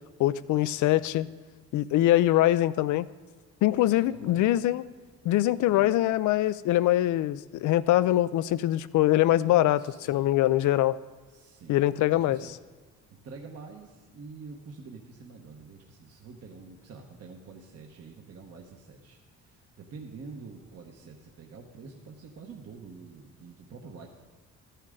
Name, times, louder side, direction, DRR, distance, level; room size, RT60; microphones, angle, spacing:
voice 1, 0.2-1.3 1.7-3.1 3.6-4.8 5.2-11.0 11.7-12.4, left 14 dB, 75° left, 16 dB, 0.5 m, -23 dB
voice 2, 3.9-4.7 5.7-5.9 9.8-10.3 11.3-11.8 12.1-12.5 13.2-24.1, right 4 dB, 55° right, 1 dB, 1.1 m, -47 dB
13.5 x 9.9 x 3.8 m, 1.4 s
cardioid pair, 90°, 30 cm